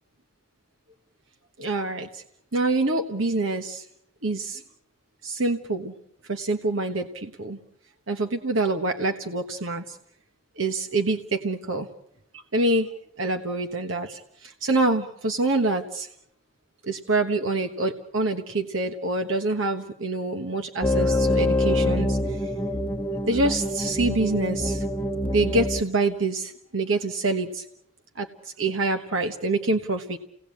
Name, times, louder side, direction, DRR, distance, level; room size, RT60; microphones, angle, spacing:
voice 1, 1.6-2.2 2.5-3.8 4.2-4.6 5.2-5.9 6.3-7.6 8.1-10.0 10.6-11.9 12.3-12.9 13.2-16.1 16.8-22.5 23.3-24.8 25.3-27.7 28.2-30.2, right 2 dB, 80° right, 5 dB, 1.4 m, -26 dB
sound 1, 20.8-25.8, left 1 dB, 10° left, 1.2 m, -25 dB
29.5 x 18.5 x 8.6 m, 0.79 s
head